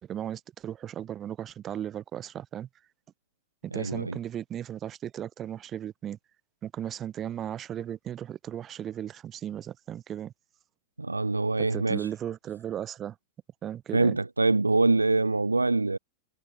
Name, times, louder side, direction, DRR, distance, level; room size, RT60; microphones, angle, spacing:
voice 1, 0.0-2.7 3.6-6.2 6.6-10.3 11.6-13.2 13.6-14.2, right 10 dB, 30° right, 5.3 m, -36 dB
voice 2, 3.7-4.2 11.0-12.1 13.9-16.0, right 3 dB, 80° right, 1.0 m, -24 dB
figure-of-eight pair, 90°, 0 cm